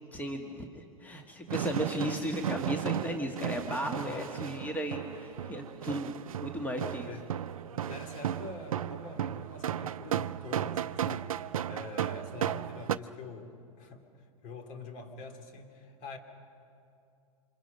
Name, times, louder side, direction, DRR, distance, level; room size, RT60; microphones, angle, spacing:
voice 1, 0.1-7.1, equal, 10° left, 3 dB, 1.7 m, -35 dB
sound 1, 1.5-13.0, right 10 dB, 70° right, 0.5 m, -35 dB
voice 2, 3.8-4.6 6.8-7.2 7.7-11.4 11.7-14.0 14.4-16.2, left 3 dB, 45° left, 5 dB, 2.8 m, -45 dB
28.0 x 26.0 x 5.4 m, 2.6 s
figure-of-eight pair, 90°, 18 cm